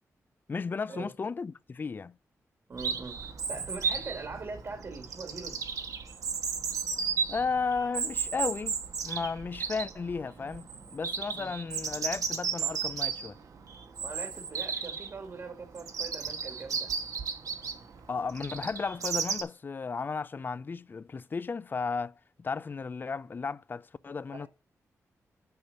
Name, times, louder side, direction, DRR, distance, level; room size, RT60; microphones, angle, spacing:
voice 1, 0.5-2.1 7.3-13.4 18.1-24.5, left 4 dB, 35° left, 0.4 m, -34 dB
voice 2, 2.7-3.2 3.5-5.6 11.3-11.5 14.0-16.9 24.3-24.5, right 4 dB, 50° right, 1.8 m, -42 dB
Chirp tweet, 2.8-19.4, right 6 dB, 75° right, 1.2 m, -34 dB
6.9 x 5.0 x 6.3 m
cardioid pair, 90°, 6 cm